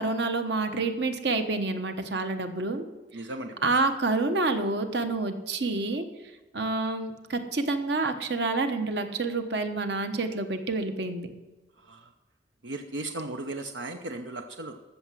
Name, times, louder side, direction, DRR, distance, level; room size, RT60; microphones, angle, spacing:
voice 1, 0.0-2.8 3.6-6.0 6.5-11.3, right 3 dB, 65° right, 7 dB, 1.1 m, -28 dB
voice 2, 3.1-3.7 11.9-12.0 12.6-14.8, right 2 dB, 90° right, 6 dB, 0.8 m, -36 dB
14.0 x 6.8 x 6.2 m, 1.2 s
head